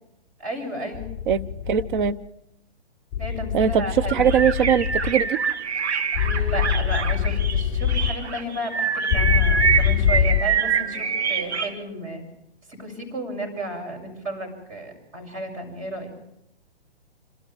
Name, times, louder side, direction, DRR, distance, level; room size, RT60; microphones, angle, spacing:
voice 1, 0.4-1.1 3.2-4.2 6.2-12.2 12.7-16.1, equal, 25° right, 0 dB, 7.3 m, -33 dB
sound 1, 0.9-2.1 3.1-5.1 6.1-8.2 9.1-10.4, left 9 dB, 20° left, 1.0 m, -24 dB
voice 2, 1.3-2.2 3.5-5.4, right 8 dB, 50° right, 11 dB, 1.0 m, -21 dB
sound 2, 4.1-11.7, right 6 dB, 80° right, 2.4 m, -25 dB
27.5 x 26.5 x 3.6 m, 0.82 s
hypercardioid pair, 135°, 33 cm